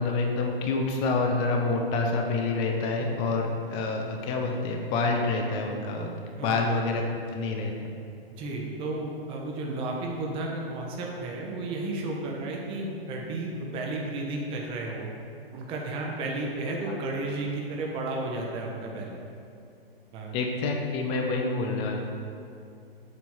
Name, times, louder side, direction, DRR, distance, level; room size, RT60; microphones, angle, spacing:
voice 1, 0.0-6.1 6.4-7.0 7.3-7.9 20.3-22.0, left 3 dB, 20° left, 2 dB, 0.5 m, -27 dB
voice 2, 8.3-15.1 15.5-19.2 20.1-20.4, right 2 dB, 20° right, -1 dB, 0.7 m, -33 dB
7.8 x 3.0 x 5.4 m, 2.5 s
hypercardioid pair, 125°, 30 cm